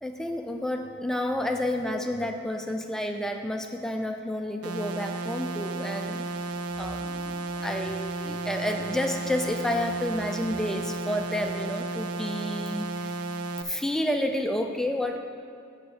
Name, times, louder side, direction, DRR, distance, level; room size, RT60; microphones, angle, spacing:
voice 1, 0.0-6.3 6.8-13.2 13.6-15.2, left 1 dB, ahead, 4 dB, 0.5 m, -30 dB
sound 1, 4.6-13.6, right 3 dB, 85° right, 0.5 m, -33 dB
8.7 x 5.1 x 6.6 m, 2.5 s
head